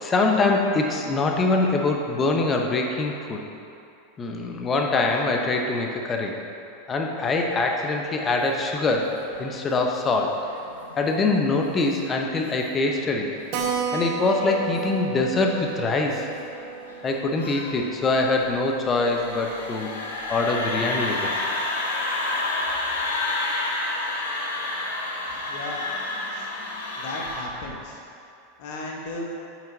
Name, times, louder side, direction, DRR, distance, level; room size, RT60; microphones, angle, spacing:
voice 1, 0.0-3.4 4.2-6.4 6.9-9.1 9.4-10.3 11.0-13.3 13.9-16.3 17.0-19.9 20.3-21.3, left 3 dB, 25° left, 2 dB, 0.7 m, -24 dB
sound 1, 8.6-27.4, left 2 dB, 90° left, 0.8 m, -31 dB
Keyboard (musical), 13.5-18.6 18.9-19.0 19.2-19.3 19.6-19.7 20.3-20.6, right 6 dB, 55° right, 0.8 m, -33 dB
voice 2, 25.2-25.8 26.3-26.5 27.0-28.0 28.6-29.2, left 2 dB, 60° left, -1 dB, 1.1 m, -35 dB
6.0 x 4.3 x 3.9 m, 2.6 s
hypercardioid pair, 105°, 0 cm